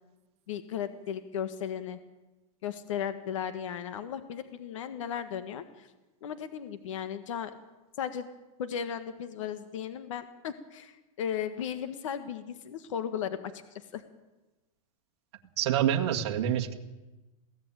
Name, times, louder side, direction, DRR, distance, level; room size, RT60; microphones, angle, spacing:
voice 1, 0.5-2.0 2.6-5.9 6.2-7.5 8.0-8.3 8.6-14.0, left 8 dB, 60° left, 10 dB, 1.4 m, -36 dB
voice 2, 15.6-16.7, right 10 dB, 50° right, 2 dB, 1.9 m, -26 dB
22.0 x 16.5 x 9.0 m, 1.1 s
supercardioid pair, 180°, 18 cm